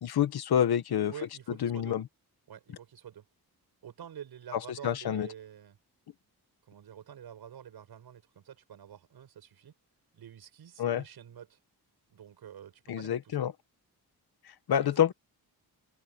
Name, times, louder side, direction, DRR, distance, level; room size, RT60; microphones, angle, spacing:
voice 1, 0.0-1.1 1.6-2.1 4.8-5.3 10.8-11.0 12.9-13.5 14.5-15.1, left 9 dB, 80° left, 1.8 m, -27 dB
voice 2, 0.9-2.0 2.5-3.2 3.8-5.8 6.7-9.7 10.1-11.6 12.1-13.5 15.0-15.1, right 9 dB, 80° right, 7.9 m, -48 dB
wide cardioid pair, 135°, 38 cm